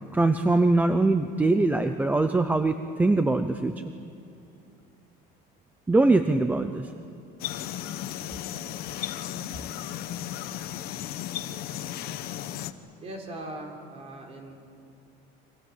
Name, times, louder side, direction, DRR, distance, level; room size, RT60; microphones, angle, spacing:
voice 1, 0.1-3.9 5.9-6.9 9.3-9.5, right 2 dB, 10° right, 8 dB, 0.6 m, -22 dB
sound 1, 7.4-12.7, left 12 dB, 45° left, 1.1 m, -35 dB
voice 2, 13.0-14.5, right 1 dB, 30° right, 1 dB, 4.4 m, -40 dB
29.5 x 25.0 x 7.4 m, 2.6 s
cardioid pair, 170°, 21 cm